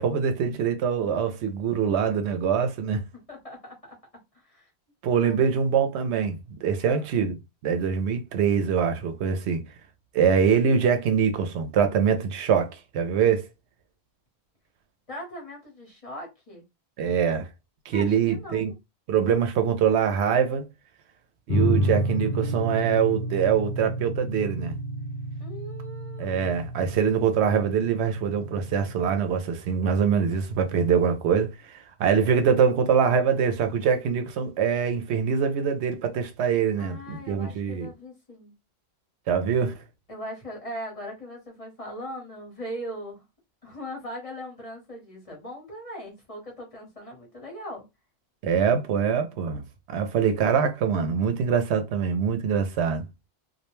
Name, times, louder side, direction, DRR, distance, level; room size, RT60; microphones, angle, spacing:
voice 1, 0.0-3.0 5.0-7.4 7.6-9.6 10.1-13.5 17.0-17.5 17.9-18.7 19.1-20.7 21.5-24.7 26.2-37.9 39.3-39.7 48.4-49.6 49.9-53.0, right 7 dB, 85° right, 0.8 m, -24 dB
voice 2, 3.3-4.0 4.3-4.7 5.2-5.4 6.8-7.1 15.1-16.6 17.9-18.8 19.3-19.4 25.4-26.6 36.8-38.5 40.1-43.2 43.6-47.8, equal, 35° left, 0.9 m, -40 dB
sound 1, 21.5-29.2, equal, 50° left, 0.5 m, -30 dB
2.3 x 2.1 x 3.0 m
omnidirectional pair, 1.1 m